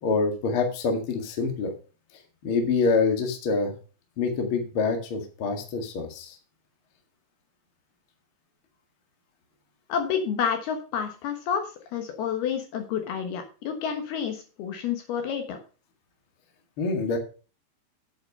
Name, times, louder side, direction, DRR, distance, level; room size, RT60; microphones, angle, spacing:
voice 1, 0.0-1.7 2.4-3.7 4.2-6.4 16.8-17.2, left 4 dB, 50° left, 3 dB, 1.5 m, -26 dB
voice 2, 9.9-15.6, left 7 dB, 70° left, 6 dB, 2.7 m, -29 dB
8.7 x 8.0 x 5.4 m, 0.35 s
omnidirectional pair, 5.5 m